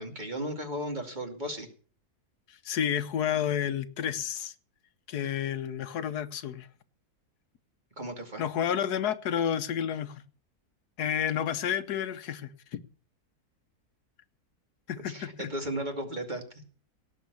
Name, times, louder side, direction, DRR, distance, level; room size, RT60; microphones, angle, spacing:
voice 1, 0.0-1.7 8.0-8.5 15.0-16.4, right 1 dB, 30° right, 2.6 m, -35 dB
voice 2, 2.6-4.5 5.1-6.7 8.4-10.2 11.0-12.8 14.9-15.3, left 9 dB, 80° left, 1.4 m, -30 dB
18.0 x 6.7 x 8.2 m
omnidirectional pair, 1.7 m